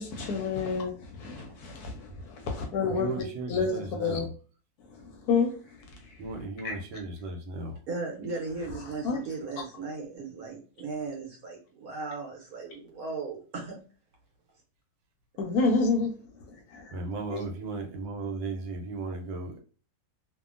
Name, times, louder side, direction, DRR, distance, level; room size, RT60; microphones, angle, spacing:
voice 1, 0.0-3.2 3.5-3.7 4.0-4.3 4.9-5.8 6.0-6.2 6.6-6.8 9.0-9.2 15.4-16.1 16.5-16.9 17.3-17.4, left 4 dB, 70° left, 1.0 m, -29 dB
voice 2, 2.8-4.3 6.2-7.8 16.9-19.6, right 3 dB, 80° right, 1.2 m, -36 dB
voice 3, 7.9-13.8, right 4 dB, 65° right, 1.1 m, -37 dB
2.7 x 2.5 x 2.4 m
omnidirectional pair, 1.9 m